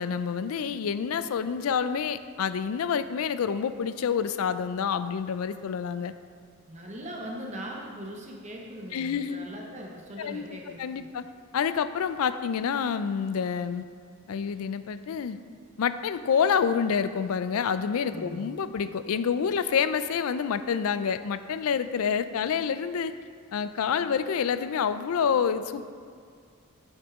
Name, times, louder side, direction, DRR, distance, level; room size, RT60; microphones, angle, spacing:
voice 1, 0.0-6.1 8.9-9.5 10.2-10.5 10.8-11.3 11.5-13.8 14.3-15.4 15.8-23.1 23.5-25.8, left 7 dB, 80° left, 12 dB, 0.4 m, -28 dB
voice 2, 6.7-11.1 18.1-18.6, equal, 35° right, -1 dB, 0.8 m, -40 dB
8.8 x 6.5 x 3.6 m, 2.1 s
head